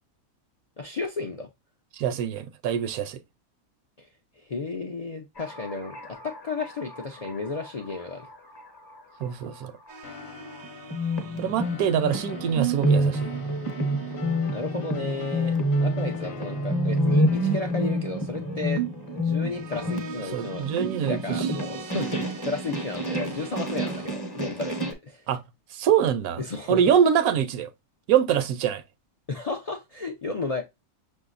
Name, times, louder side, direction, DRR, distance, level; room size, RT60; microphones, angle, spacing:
voice 1, 0.8-1.5 4.0-4.1 4.4-8.3 14.5-15.6 15.8-18.8 19.1-24.8 25.0-25.2 26.4-26.8 29.3-30.6, left 3 dB, 75° left, 0.3 m, -33 dB
voice 2, 1.9-3.2 9.2-9.7 11.4-13.3 20.3-21.5 25.3-25.4 25.7-26.4 26.7-27.7 28.1-28.8, right 9 dB, 80° right, 1.0 m, -24 dB
sound 1, 5.4-9.9 10.5-10.6 10.9-24.9, right 1 dB, 20° left, 0.7 m, -28 dB
sound 2, 9.9-24.1, right 4 dB, 55° right, 0.6 m, -46 dB
sound 3, 10.0-18.3, left 5 dB, 50° left, 0.9 m, -43 dB
6.2 x 2.7 x 2.4 m
omnidirectional pair, 1.5 m